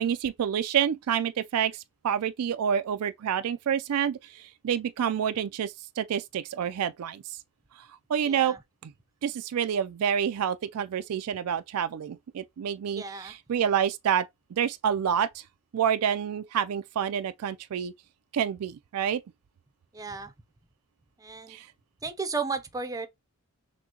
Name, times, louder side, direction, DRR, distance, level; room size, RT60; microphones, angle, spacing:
voice 1, 0.0-7.4 7.8-8.6 8.8-8.9 9.2-15.4 15.7-17.9 18.3-19.2 21.5-21.7, right 8 dB, 75° right, 0.4 m, -28 dB
voice 2, 8.2-8.6 13.0-13.3 19.9-20.3 21.2-21.6 22.0-23.1, right 4 dB, 15° right, 0.5 m, -34 dB
6.1 x 2.1 x 2.9 m
head